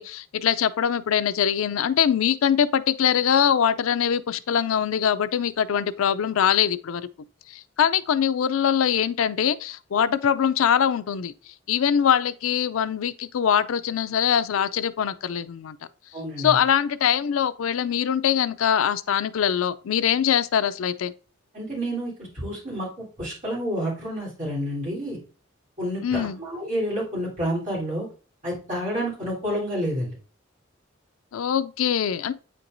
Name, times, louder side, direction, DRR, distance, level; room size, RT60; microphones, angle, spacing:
voice 1, 0.0-7.1 7.5-11.3 11.7-15.8 16.4-21.1 26.0-26.4 31.3-32.3, left 8 dB, 85° left, 0.4 m, -23 dB
voice 2, 16.1-16.6 21.5-25.2 25.8-28.1 28.4-30.1, equal, 35° right, 3.4 m, -29 dB
8.4 x 4.5 x 2.6 m
head